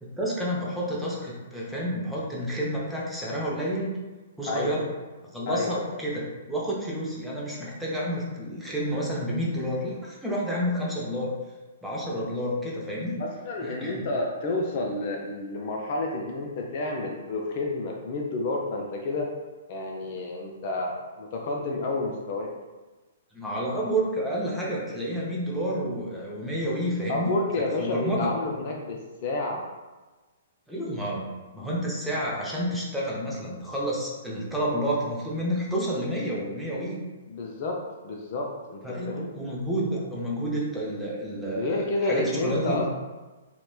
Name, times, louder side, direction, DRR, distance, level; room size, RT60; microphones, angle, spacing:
voice 1, 0.0-3.9 4.4-4.9 5.3-11.3 11.8-13.2 13.6-14.1 23.3-27.3 27.8-28.3 30.7-37.0 38.8-42.9, equal, ahead, -6 dB, 0.6 m, -30 dB
voice 2, 4.4-4.8 5.5-5.8 13.2-19.3 19.7-22.5 27.1-29.6 37.3-39.3 41.5-42.9, left 2 dB, 45° left, 0 dB, 0.4 m, -30 dB
2.9 x 2.0 x 2.2 m, 1.2 s
figure-of-eight pair, 120°, 0 cm